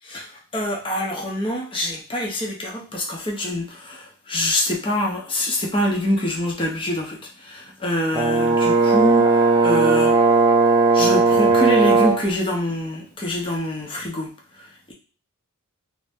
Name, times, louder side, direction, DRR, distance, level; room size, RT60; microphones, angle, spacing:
voice 1, 0.1-10.2 10.9-14.3 14.6-14.9, left 1 dB, 25° left, 0 dB, 0.6 m, -25 dB
Brass instrument, 8.1-12.3, right 3 dB, 15° right, 0.3 m, -17 dB
2.6 x 2.1 x 3.4 m, 0.38 s
head